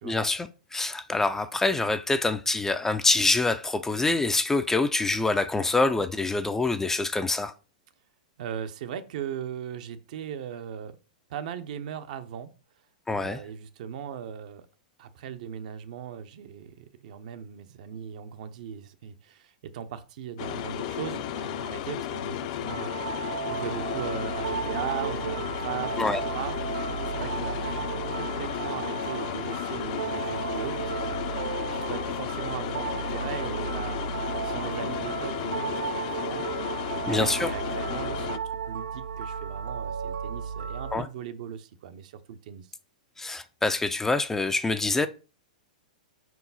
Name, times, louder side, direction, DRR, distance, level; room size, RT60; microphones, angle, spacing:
voice 1, 0.0-7.5 13.1-13.4 26.0-26.2 37.1-37.5 40.9-41.1 43.2-45.1, left 3 dB, 10° left, 0.4 m, -25 dB
voice 2, 8.4-11.0 11.3-12.5 13.2-14.7 15.0-23.2 23.5-26.6 27.1-27.9 28.1-34.0 34.4-42.7, right 9 dB, 60° right, 0.8 m, -38 dB
sound 1, 20.4-38.4, left 11 dB, 55° left, 0.6 m, -33 dB
sound 2, 22.7-41.0, right 7 dB, 85° right, 0.4 m, -34 dB
5.3 x 4.7 x 4.0 m
hypercardioid pair, 125°, 4 cm